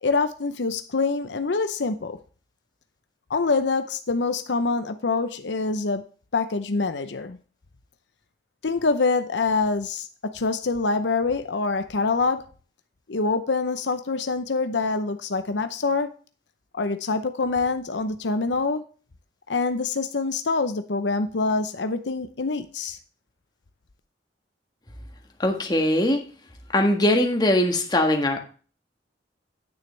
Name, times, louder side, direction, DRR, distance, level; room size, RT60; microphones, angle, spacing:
voice 1, 0.0-2.2 3.3-6.0 6.3-7.4 8.6-12.4 13.1-16.1 16.7-18.8 19.5-23.0, left 3 dB, 80° left, 0.8 m, -25 dB
voice 2, 25.4-26.2 26.7-28.4, left 1 dB, 25° left, 1.6 m, -21 dB
9.7 x 9.3 x 3.3 m
head